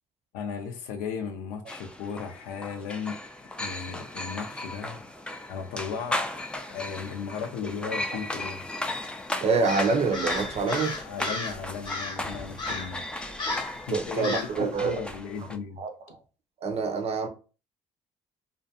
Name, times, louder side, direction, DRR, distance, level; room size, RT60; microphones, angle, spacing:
voice 1, 0.3-3.2 3.6-5.0 5.5-6.2 6.6-8.6 11.0-13.0 13.9-15.8, left 6 dB, 85° left, 0.5 m, -36 dB
sound 1, 1.7-15.6, left 1 dB, 5° left, 0.4 m, -36 dB
voice 2, 9.4-10.9 13.9-15.0 15.8-16.2 16.6-17.3, right 4 dB, 50° right, 0.5 m, -26 dB
Crow, 9.6-11.6 11.9-12.2 12.6-13.0 13.4-13.8 14.2-14.6, left 3 dB, 35° left, 0.8 m, -34 dB
2.4 x 2.1 x 2.6 m
supercardioid pair, 65°, 14 cm